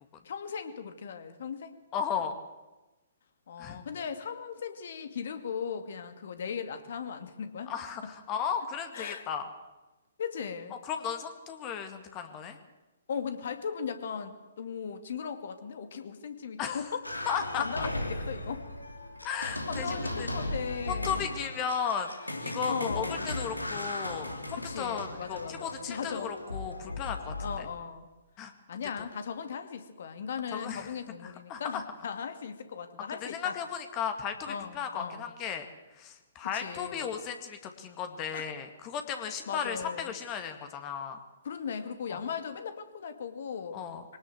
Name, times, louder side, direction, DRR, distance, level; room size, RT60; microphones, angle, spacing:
voice 1, 0.2-1.8 3.5-7.7 8.9-9.3 10.2-10.8 13.1-17.0 17.6-18.7 19.4-21.2 22.7-23.3 24.6-26.3 27.4-28.1 28.7-33.6 34.5-35.3 36.4-37.2 38.3-38.5 39.2-40.1 41.4-43.8, left 6 dB, 55° left, 9 dB, 2.4 m, -38 dB
voice 2, 1.9-2.4 3.6-3.8 7.7-9.5 10.8-12.6 16.6-16.8 17.3-17.9 19.2-20.3 20.9-22.1 22.4-27.3 28.4-28.5 30.5-30.9 31.5-31.8 33.2-35.6 36.0-41.2 42.1-42.2 43.7-44.0, left 7 dB, 25° left, 7 dB, 2.1 m, -35 dB
sound 1, 17.0-27.6, left 2 dB, 85° left, 3.1 m, -37 dB
23.0 x 19.0 x 7.8 m, 1.1 s
figure-of-eight pair, 125°, 0 cm